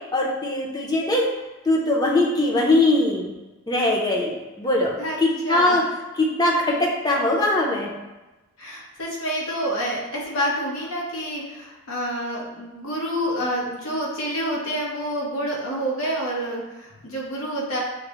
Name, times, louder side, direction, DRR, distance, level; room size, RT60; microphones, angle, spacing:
voice 1, 0.1-1.2 1.7-3.3 3.7-4.9 5.2-5.8 6.2-7.9, left 2 dB, 20° left, -2 dB, 0.6 m, -21 dB
voice 2, 5.4-5.8 8.6-17.8, equal, 80° left, -3 dB, 1.1 m, -28 dB
6.2 x 2.1 x 3.0 m, 1.1 s
head